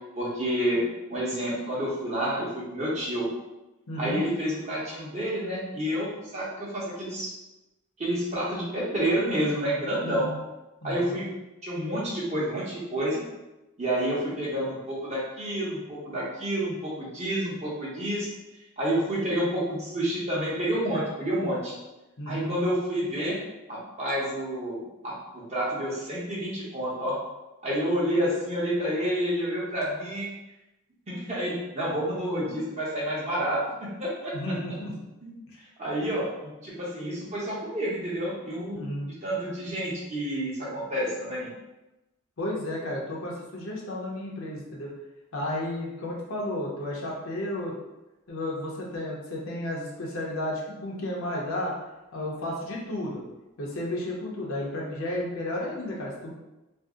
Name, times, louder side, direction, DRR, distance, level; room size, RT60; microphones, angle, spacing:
voice 1, 0.1-0.8 1.1-3.3 4.0-7.3 8.0-10.3 10.8-11.3 11.6-13.2 13.8-18.3 18.8-21.7 22.3-23.4 23.7-27.2 27.6-30.3 31.1-34.3 35.2-35.3 35.8-38.9 39.2-41.5, right 1 dB, 30° right, -7 dB, 0.9 m, -29 dB
voice 2, 3.9-4.2 10.0-10.4 10.8-11.2 22.2-22.6 34.3-34.9 38.7-39.1 42.4-44.9 45.3-47.7 48.3-51.7 52.1-53.2 53.6-56.3, left 1 dB, 60° left, -3 dB, 0.7 m, -32 dB
2.6 x 2.0 x 3.5 m, 1.0 s
head